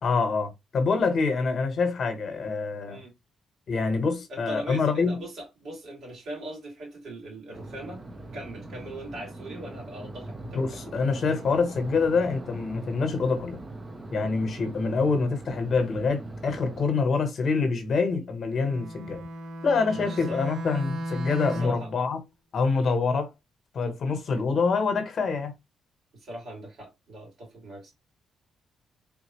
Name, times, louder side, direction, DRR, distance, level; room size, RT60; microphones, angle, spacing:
voice 1, 0.0-3.0 3.7-5.2 10.5-13.6 14.1-19.3 19.6-22.2 22.5-23.3 23.7-25.5, left 4 dB, 55° left, 1.0 m, -26 dB
voice 2, 4.3-8.0 8.3-10.8 19.9-20.4 21.5-21.9 24.3-24.4 26.1-27.9, right 1 dB, 65° right, 2.5 m, -40 dB
sound 1, 7.5-16.9, right 2 dB, 25° right, 0.7 m, -41 dB
Bowed string instrument, 18.5-21.9, right 1 dB, 90° right, 1.0 m, -35 dB
3.8 x 2.4 x 3.0 m
cardioid pair, 90°, 0 cm